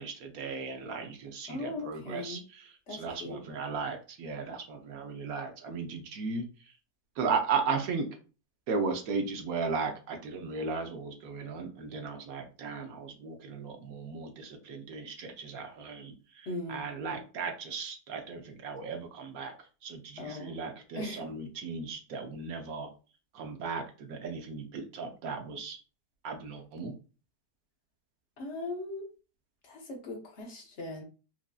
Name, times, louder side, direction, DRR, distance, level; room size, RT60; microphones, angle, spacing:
voice 1, 0.0-6.5 7.2-8.1 8.7-19.5 19.8-22.9 23.3-25.8 26.2-26.9, right 4 dB, 65° right, 4 dB, 1.0 m, -36 dB
voice 2, 1.5-2.4 2.9-3.4 16.5-16.9 20.2-20.6 20.9-21.3 28.4-29.1 29.6-31.0, left 2 dB, 50° left, 1 dB, 1.0 m, -39 dB
4.6 x 2.5 x 2.3 m, 0.34 s
omnidirectional pair, 1.8 m